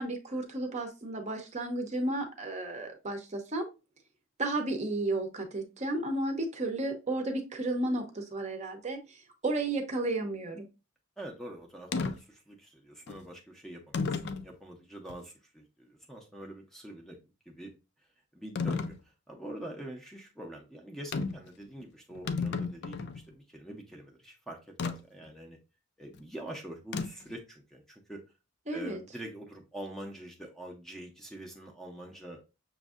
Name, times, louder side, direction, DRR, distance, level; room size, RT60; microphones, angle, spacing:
voice 1, 0.0-3.7 4.4-10.7 28.7-29.0, right 2 dB, 35° right, 3 dB, 0.7 m, -33 dB
voice 2, 11.2-17.2 17.5-17.7 18.3-25.6 26.0-28.2 28.7-32.4, right 1 dB, ahead, 1 dB, 0.6 m, -45 dB
sound 1, 11.9-12.2 13.1-13.2 13.9-14.5 15.1-15.2 18.6-19.0 21.1-21.5 21.8-21.9 22.1-23.2 24.8-25.0 26.9-27.3, left 4 dB, 55° left, 0.4 m, -32 dB
6.2 x 2.6 x 2.4 m, 0.28 s
head